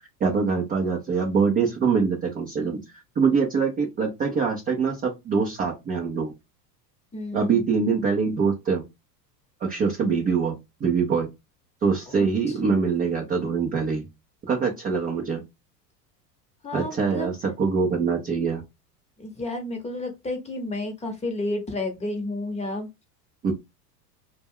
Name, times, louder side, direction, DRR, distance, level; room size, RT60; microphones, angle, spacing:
voice 1, 0.2-2.8 3.2-6.3 7.3-8.8 9.6-10.6 10.8-11.3 11.8-14.0 14.5-15.4 16.7-18.6 23.4-23.5, right 5 dB, 20° right, 0.4 m, -24 dB
voice 2, 7.1-7.6 12.2-12.3 12.6-12.8 16.6-17.3 19.2-22.9, left 2 dB, 15° left, 0.7 m, -31 dB
2.2 x 2.2 x 3.4 m
hypercardioid pair, 100°, 49 cm